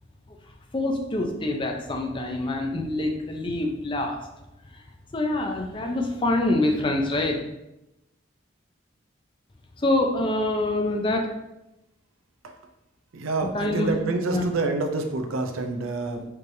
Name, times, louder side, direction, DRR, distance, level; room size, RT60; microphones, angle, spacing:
voice 1, 0.7-4.2 5.1-7.4 9.8-11.3 13.5-13.9 14.3-14.4, left 2 dB, 25° left, 2 dB, 0.4 m, -25 dB
voice 2, 13.1-16.3, right 3 dB, 90° right, 5 dB, 0.5 m, -27 dB
4.4 x 3.2 x 2.7 m, 0.91 s
head